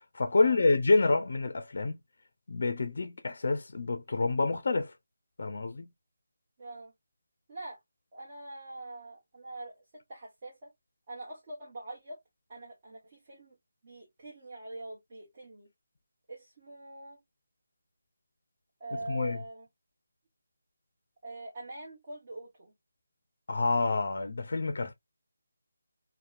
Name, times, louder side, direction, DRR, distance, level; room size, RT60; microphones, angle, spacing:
voice 1, 0.1-2.0 2.5-4.9 5.4-5.9 19.1-19.4 23.5-24.9, left 3 dB, 60° left, 0.4 m, -27 dB
voice 2, 6.6-6.9 7.5-7.8 8.1-10.7 11.1-12.2 12.5-13.5 13.8-15.7 16.3-17.2 18.8-19.7 21.2-22.7, right 2 dB, 35° right, 1.0 m, -44 dB
2.8 x 2.1 x 2.3 m
figure-of-eight pair, 160°, 0 cm